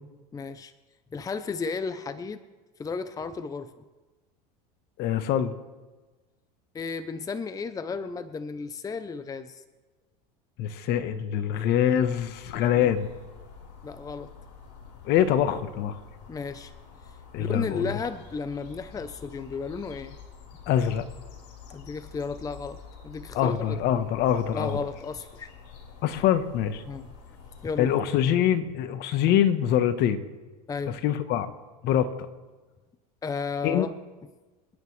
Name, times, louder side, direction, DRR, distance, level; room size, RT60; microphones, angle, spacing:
voice 1, 0.3-0.7 1.1-2.4 2.8-3.7 6.7-9.6 12.8-12.9 13.8-14.3 16.3-16.7 17.4-20.2 21.7-23.8 24.5-25.5 26.9-27.1 27.6-28.0 30.7-31.0 33.2-33.9, left 4 dB, 15° left, 12 dB, 0.6 m, -33 dB
voice 2, 5.0-5.6 10.6-13.1 15.0-16.0 17.3-18.0 20.7-21.0 23.3-24.8 26.0-26.8 27.8-30.2 31.0-31.5 31.8-32.1 33.6-33.9, left 10 dB, 55° left, 11 dB, 1.2 m, -24 dB
sound 1, 11.9-27.9, left 6 dB, 75° left, 4.2 m, -48 dB
26.0 x 9.4 x 3.3 m, 1.3 s
hypercardioid pair, 100°, 20 cm